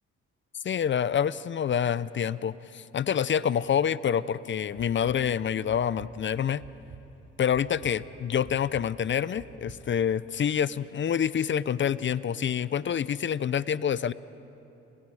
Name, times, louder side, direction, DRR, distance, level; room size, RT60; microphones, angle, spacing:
voice 1, 0.6-6.6 7.4-14.1, left 8 dB, 40° left, 17 dB, 0.6 m, -27 dB
sound 1, 4.8-5.2 5.7-6.1 6.6-7.0 7.5-7.9 8.4-8.9 9.4-9.8, right 5 dB, 55° right, 3.3 m, -47 dB
29.0 x 26.5 x 4.9 m, 3.0 s
cardioid pair, 80°, 29 cm